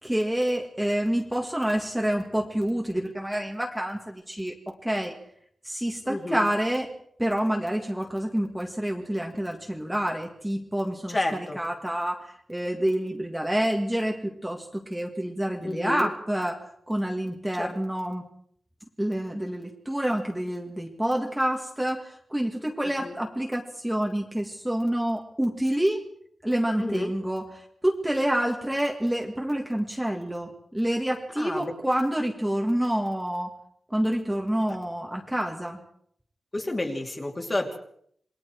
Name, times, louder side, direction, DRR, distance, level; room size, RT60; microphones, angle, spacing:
voice 1, 0.0-5.2 5.6-6.9 7.2-11.2 11.6-18.2 19.0-26.0 26.4-33.5 33.9-35.8, right 1 dB, 5° right, 1 dB, 1.8 m, -28 dB
voice 2, 6.1-6.5 11.1-11.6 15.6-16.1 17.5-17.7 23.0-23.1 26.8-27.1 31.4-31.7 34.7-34.8 36.5-37.8, left 1 dB, 25° left, 2 dB, 2.7 m, -30 dB
28.0 x 21.0 x 4.7 m, 0.66 s
wide cardioid pair, 155°, 0 cm